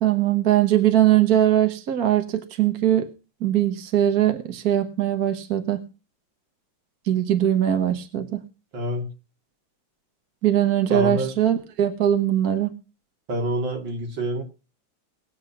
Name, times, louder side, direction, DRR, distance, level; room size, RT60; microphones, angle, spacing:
voice 1, 0.0-3.1 3.4-5.8 7.1-8.4 10.4-12.7, right 11 dB, 55° right, 6 dB, 1.7 m, -21 dB
voice 2, 8.7-9.1 10.9-11.3 13.3-14.4, equal, 75° right, 2 dB, 3.3 m, -26 dB
20.0 x 7.9 x 5.9 m, 0.33 s
omnidirectional pair, 2.1 m